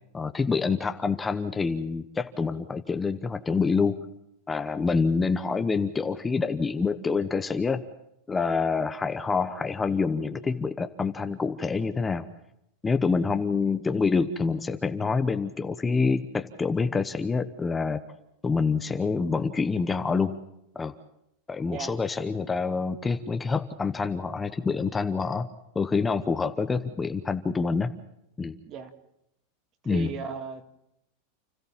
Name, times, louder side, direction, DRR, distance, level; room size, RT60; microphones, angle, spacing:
voice 1, 0.1-4.0 4.5-7.8 8.3-12.2 12.8-18.0 18.4-20.4 20.7-20.9 21.5-25.5 25.7-27.9 28.4-28.6 29.8-30.1, left 4 dB, 15° left, 9 dB, 0.9 m, -26 dB
voice 2, 29.8-30.6, right 6 dB, 40° right, 7 dB, 2.1 m, -36 dB
29.5 x 14.0 x 7.3 m, 0.82 s
supercardioid pair, 130°, 0 cm